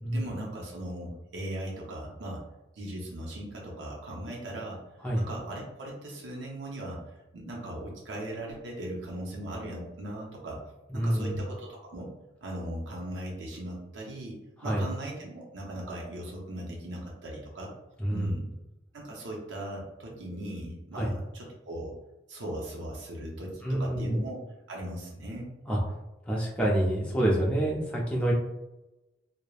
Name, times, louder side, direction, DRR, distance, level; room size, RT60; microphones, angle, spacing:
voice 1, 0.1-2.4 2.7-4.8 5.2-10.6 10.9-12.1 12.4-17.7 18.1-18.5 18.9-21.9 22.3-24.4 24.7-25.5, right 1 dB, 80° right, -3 dB, 0.6 m, -38 dB
voice 2, 10.9-11.4 14.6-14.8 18.0-18.3 20.9-21.1 23.6-24.2 25.7-25.8 26.3-28.3, right 1 dB, 5° left, -4 dB, 0.5 m, -27 dB
3.1 x 2.0 x 2.3 m, 0.98 s
head